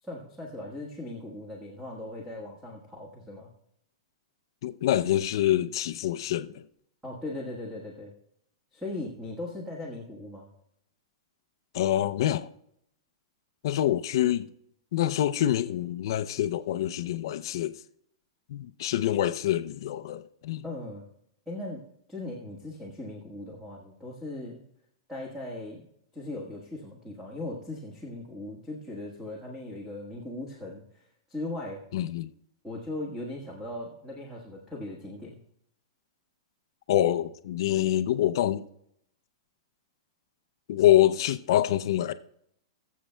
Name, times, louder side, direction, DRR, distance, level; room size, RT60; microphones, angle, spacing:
voice 1, 0.0-3.5 7.0-8.1 8.7-10.5 20.6-21.1 21.5-21.8 22.1-24.6 25.1-25.9 26.1-31.8 32.6-35.4, left 2 dB, 5° right, 1.4 m, -38 dB
voice 2, 4.6-6.6 11.7-12.5 13.6-14.5 14.9-17.8 18.5-20.6 31.9-32.3 36.9-38.6 40.7-42.1, left 12 dB, 55° left, 0.5 m, -26 dB
21.5 x 7.4 x 2.2 m
supercardioid pair, 165°, 3 cm